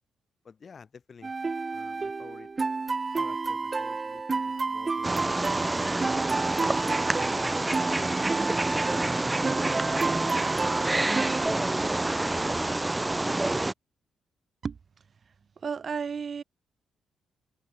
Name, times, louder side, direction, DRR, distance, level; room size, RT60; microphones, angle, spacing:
voice 1, 0.4-1.3 1.7-2.5 3.2-5.3, left 5 dB, 50° left, 6.1 m, -52 dB
sound 1, 1.2-11.5, right 4 dB, 35° right, 0.4 m, -31 dB
Wild animals, 5.0-13.7, right 2 dB, 20° right, 1.3 m, -27 dB
voice 2, 15.6-16.4, right 6 dB, 50° right, 1.5 m, -32 dB
supercardioid pair, 55°, 0 cm